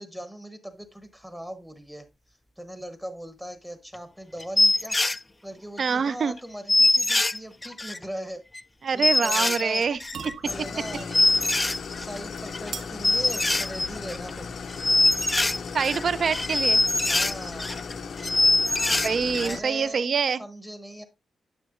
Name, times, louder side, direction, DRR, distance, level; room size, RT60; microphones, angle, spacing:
voice 1, 0.0-2.1 2.6-5.0 5.4-8.4 8.9-9.8 10.4-11.1 11.9-14.5 17.1-17.7 19.4-20.1 20.4-21.0, equal, 5° right, 0.8 m, -39 dB
sound 1, 3.9-4.0 4.4-5.2 5.8-5.9 6.1-6.2 6.4-6.5 6.7-8.0 8.5-8.6 9.0-12.2 12.5-12.7 13.0-14.4 14.7-17.9 18.2-19.6 19.8-19.9, left 2 dB, 15° left, 0.3 m, -23 dB
voice 2, 5.8-6.3 8.8-10.0 15.7-16.8 18.6-20.4, right 5 dB, 45° right, 0.4 m, -25 dB
sound 2, 9.7-16.1, right 6 dB, 70° right, 1.0 m, -46 dB
Idling, 10.5-19.6, left 5 dB, 55° left, 0.6 m, -37 dB
10.5 x 6.3 x 2.5 m
wide cardioid pair, 170°, 0 cm